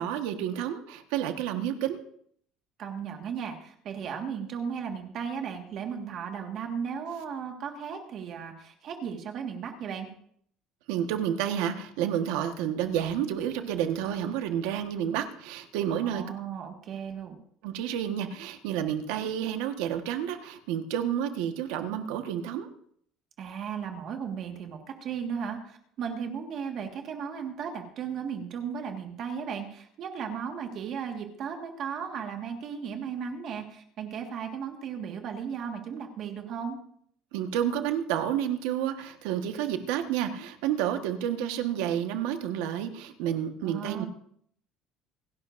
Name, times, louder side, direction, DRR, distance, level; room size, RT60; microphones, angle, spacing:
voice 1, 0.0-2.0 10.9-16.2 17.6-22.7 37.3-44.0, right 10 dB, 85° right, 6 dB, 1.4 m, -30 dB
voice 2, 2.8-10.1 16.0-17.4 23.4-36.8 43.6-44.1, right 7 dB, 40° right, 3 dB, 1.7 m, -36 dB
27.0 x 12.0 x 2.6 m, 0.65 s
cardioid pair, 175°, 0 cm